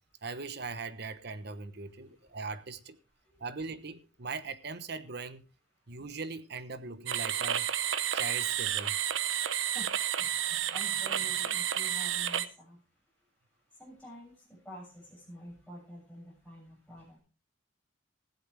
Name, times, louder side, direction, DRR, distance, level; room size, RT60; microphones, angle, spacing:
voice 1, 0.2-3.0 3.4-5.4 5.9-7.7 8.1-9.0, right 4 dB, 55° right, 1.1 m, -40 dB
voice 2, 1.4-2.4 3.2-3.5 5.8-6.0 8.1-8.2 9.2-17.2, equal, 5° left, 7.5 m, -50 dB
sound 1, 7.1-12.5, right 10 dB, 80° right, 0.9 m, -31 dB
15.5 x 11.5 x 3.5 m
head